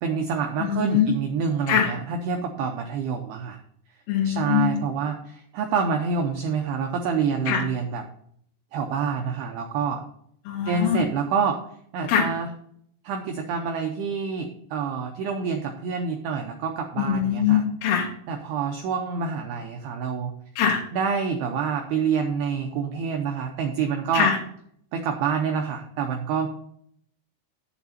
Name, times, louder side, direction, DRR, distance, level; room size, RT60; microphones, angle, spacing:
voice 1, 0.0-3.6 4.2-8.0 8.7-10.0 10.7-11.6 11.9-12.5 13.0-17.6 18.3-20.3 20.9-24.3 24.9-26.5, right 6 dB, 85° right, 3 dB, 2.3 m, -27 dB
voice 2, 0.6-1.1 1.7-1.9 4.1-4.8 7.5-7.6 10.5-11.0 12.1-12.3 17.0-18.1 20.6-20.8 24.1-24.4, left 8 dB, 70° left, 0 dB, 2.5 m, -22 dB
9.6 x 7.2 x 4.2 m, 0.67 s
omnidirectional pair, 5.6 m